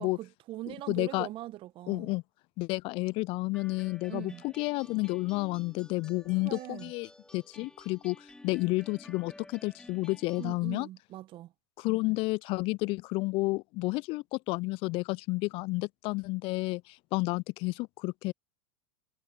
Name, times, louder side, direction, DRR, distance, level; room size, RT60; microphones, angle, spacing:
voice 1, 0.0-2.1 4.1-4.4 6.4-6.9 10.4-11.5, right 15 dB, 40° right, 1.5 m, -41 dB
voice 2, 0.9-1.3 1.9-2.2 2.6-7.1 7.3-8.2 8.4-10.9 11.8-16.8 17.1-18.3, left 23 dB, 40° left, 0.4 m, -31 dB
sound 1, 3.5-10.5, left 1 dB, 5° left, 3.9 m, -53 dB
hypercardioid pair, 90°, 13 cm